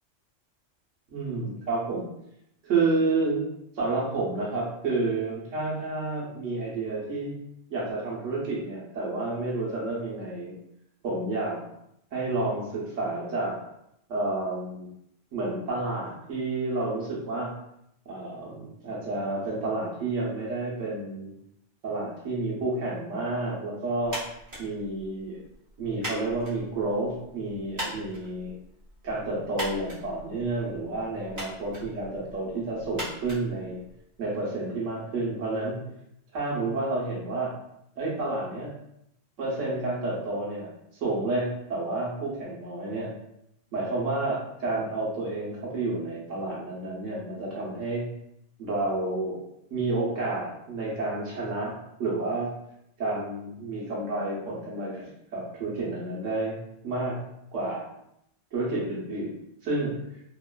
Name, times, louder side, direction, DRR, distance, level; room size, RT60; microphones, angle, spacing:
voice 1, 1.1-2.1 2.6-3.4 3.8-7.3 7.7-10.5 11.0-11.7 12.1-13.5 14.1-14.9 15.3-17.5 18.1-21.3 21.8-24.2 24.6-25.4 25.8-28.5 29.0-33.8 34.2-35.8 36.3-37.5 38.0-38.7 39.4-40.7 41.0-43.1 43.7-48.0 48.6-49.4 49.7-51.7 52.0-52.5 53.0-56.6 56.8-57.2 57.5-57.9 58.5-59.3 59.6-60.0, right 2 dB, 90° right, -4 dB, 1.1 m, -30 dB
sound 1, 24.0-34.2, equal, 40° right, 1.2 m, -41 dB
2.9 x 2.1 x 2.3 m, 0.77 s
omnidirectional pair, 1.2 m